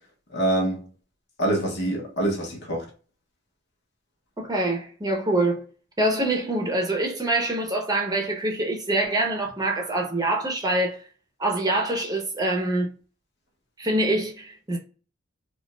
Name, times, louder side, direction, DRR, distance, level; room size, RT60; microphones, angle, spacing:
voice 1, 0.3-0.8 1.4-2.9, right 1 dB, 60° left, 1.3 m, -25 dB
voice 2, 4.4-5.6 6.0-11.0 11.4-13.0 13.8-14.8, right 1 dB, 20° right, 0.9 m, -25 dB
4.9 x 2.5 x 2.3 m
head